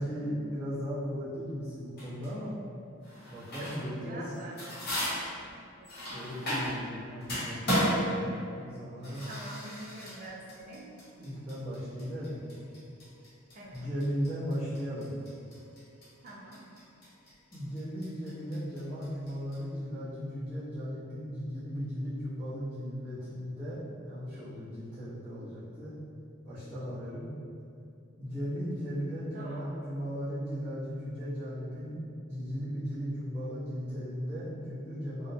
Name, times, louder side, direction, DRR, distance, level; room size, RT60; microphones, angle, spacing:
voice 1, 0.0-2.5 3.3-4.3 6.1-9.3 11.2-12.4 13.7-15.1 17.5-25.9 26.4-27.3 28.2-32.0 32.3-35.3, equal, 15° left, -16 dB, 0.7 m, -36 dB
sound 1, 2.0-2.3 3.0-3.9 4.3-6.9 7.2-19.6, equal, 45° left, 0.8 m, -35 dB
voice 2, 3.6-4.8 5.8-6.2 9.3-10.9 13.5-13.9 16.2-16.6 29.3-29.7, right 1 dB, 40° right, -3 dB, 0.3 m, -45 dB
2.8 x 2.0 x 2.5 m, 2.5 s
head